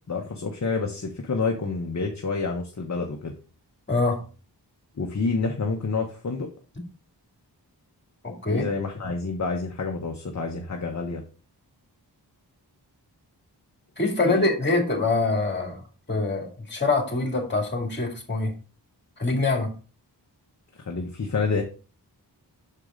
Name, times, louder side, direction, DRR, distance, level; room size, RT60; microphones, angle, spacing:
voice 1, 0.1-3.3 5.0-6.5 8.5-11.2 14.2-14.5 20.8-21.6, left 4 dB, 40° left, 2 dB, 1.0 m, -28 dB
voice 2, 8.2-8.6 14.0-15.8 16.1-18.5 19.2-19.7, left 3 dB, 25° left, 2 dB, 2.2 m, -24 dB
6.7 x 4.8 x 3.7 m, 0.36 s
wide cardioid pair, 70°, 42 cm